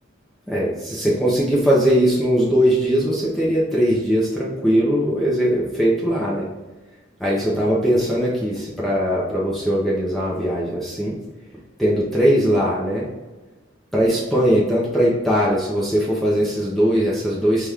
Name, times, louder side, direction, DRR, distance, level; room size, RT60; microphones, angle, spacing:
voice 1, 0.5-6.5 7.2-11.2 11.8-13.1 13.9-17.7, equal, ahead, -6 dB, 0.6 m, -20 dB
5.8 x 2.4 x 3.4 m, 1.1 s
head